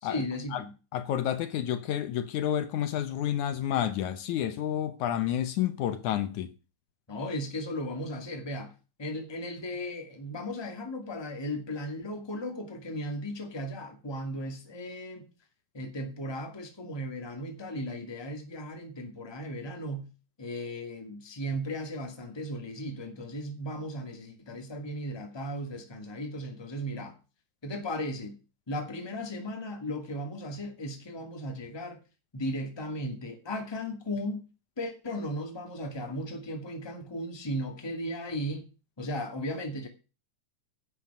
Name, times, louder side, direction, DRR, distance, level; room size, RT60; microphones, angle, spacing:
voice 1, 0.0-0.7 7.1-8.7 9.0-15.3 15.7-20.1 20.4-27.2 27.6-28.4 28.7-32.0 32.3-34.5 34.8-38.7 39.0-39.9, equal, 10° left, 1.7 m, -36 dB
voice 2, 0.9-6.5, left 11 dB, 70° left, 2.2 m, -30 dB
11.0 x 8.2 x 6.0 m
omnidirectional pair, 3.7 m